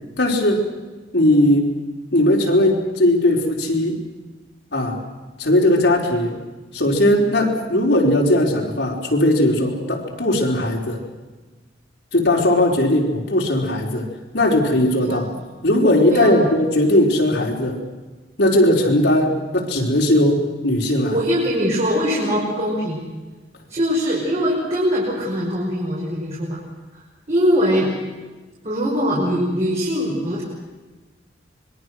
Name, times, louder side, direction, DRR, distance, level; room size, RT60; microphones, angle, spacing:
voice 1, 0.2-0.7 1.1-1.8 2.1-4.0 4.7-5.0 5.4-6.4 6.7-11.0 12.1-14.1 14.3-15.3 15.6-17.8 18.4-21.2, left 1 dB, 75° left, 0 dB, 4.6 m, -18 dB
voice 2, 21.1-23.0 23.7-26.6 26.9-27.9 28.6-30.4, equal, 40° right, -5 dB, 5.7 m, -22 dB
26.0 x 22.5 x 6.4 m, 1.2 s
head